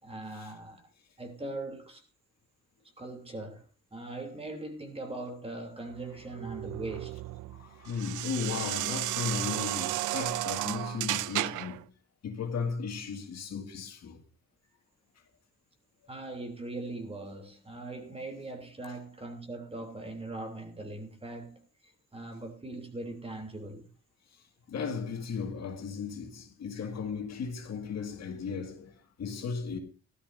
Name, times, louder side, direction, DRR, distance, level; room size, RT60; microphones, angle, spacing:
voice 1, 0.0-0.9 1.2-2.0 3.0-7.2 16.1-21.7 22.1-23.9, right 2 dB, 20° right, 3.1 m, -40 dB
sound 1, 6.0-11.8, right 17 dB, 85° right, 0.5 m, -34 dB
voice 2, 7.5-11.9 12.2-14.2 24.7-29.8, left 5 dB, 60° left, 2.1 m, -36 dB
17.5 x 13.0 x 2.7 m
cardioid pair, 90°, 30 cm